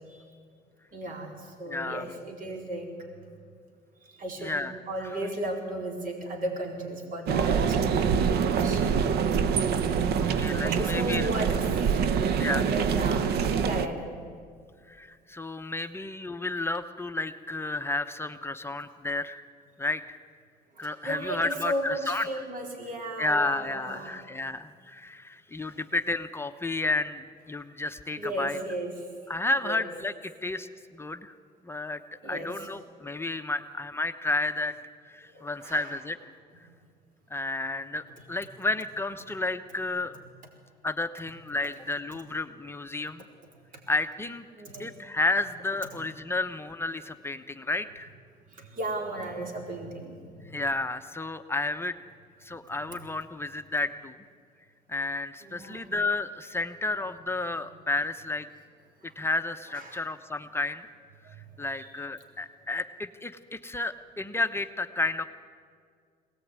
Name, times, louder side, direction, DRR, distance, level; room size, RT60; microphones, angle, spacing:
voice 1, 0.9-1.3 1.6-2.9 4.2-4.6 4.9-7.9 8.6-8.8 10.6-11.5 12.5-13.3 13.6-14.2 20.8-24.2 28.2-28.9 29.6-29.8 32.2-32.5 35.3-35.9 44.5-44.9 48.6-50.5 55.4-55.9 59.7-60.0 61.7-61.9, right 1 dB, 55° right, 1 dB, 4.3 m, -35 dB
voice 2, 1.7-2.2 4.4-5.2 10.2-11.3 12.4-12.7 14.9-19.4 19.8-20.0 20.8-22.4 23.2-28.6 29.3-30.1 30.4-31.3 31.6-32.0 32.2-34.8 35.0-36.2 37.3-40.1 40.8-43.2 43.9-44.5 44.8-48.1 50.5-52.0 52.4-54.2 54.9-58.5 59.0-60.9 61.6-65.2, left 2 dB, 15° left, 8 dB, 0.9 m, -31 dB
sound 1, 7.3-13.9, right 6 dB, 70° right, 1.0 m, -25 dB
22.5 x 18.5 x 9.6 m, 2.1 s
cardioid pair, 110°, 17 cm